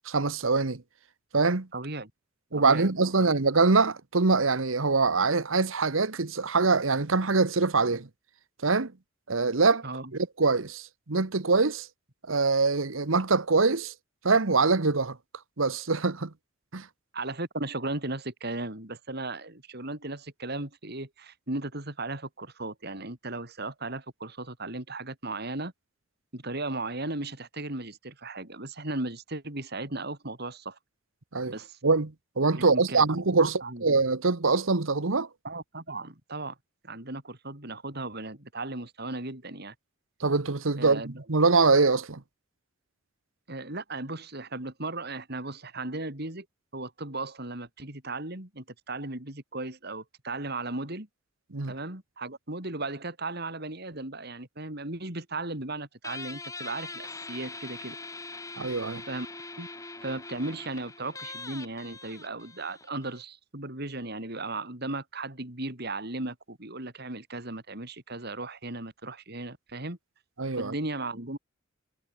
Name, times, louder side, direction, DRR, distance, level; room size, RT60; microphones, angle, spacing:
voice 1, 0.0-0.8 1.3-1.7 2.5-8.1 8.6-8.9 9.3-9.8 10.1-11.9 12.3-13.9 14.2-15.2 15.6-16.3 16.7-16.9 31.3-31.5 31.8-33.5 33.8-35.3 40.2-42.2 51.5-51.7 58.6-59.0 70.4-70.7, right 4 dB, 80° right, 1.3 m, -24 dB
voice 2, 1.7-2.1 2.5-2.9 3.2-3.3 9.8-10.1 17.1-25.7 26.3-30.8 31.5-31.8 32.5-33.0 33.4-33.8 35.4-36.6 36.8-39.7 40.8-41.2 43.5-46.5 46.7-51.1 51.7-58.0 59.1-59.3 59.6-59.7 60.0-70.0 70.5-71.4, right 2 dB, 55° right, 4.2 m, -36 dB
Guitar, 56.0-63.2, left 3 dB, 15° left, 7.4 m, -42 dB
head